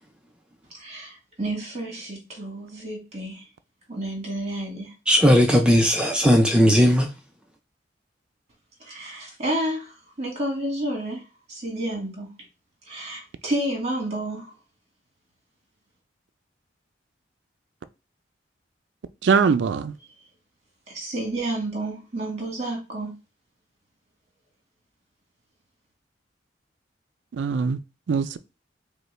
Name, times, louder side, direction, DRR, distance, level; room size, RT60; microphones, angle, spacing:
voice 1, 0.7-3.4 3.9-4.9 8.8-11.2 11.5-12.3 12.9-14.5 20.9-23.1, right 1 dB, 35° right, 1.8 m, -30 dB
voice 2, 5.1-7.1, equal, 5° right, 0.4 m, -17 dB
voice 3, 19.2-19.9 27.3-27.8 28.1-28.4, right 5 dB, 75° right, 0.4 m, -21 dB
5.2 x 2.2 x 3.2 m
head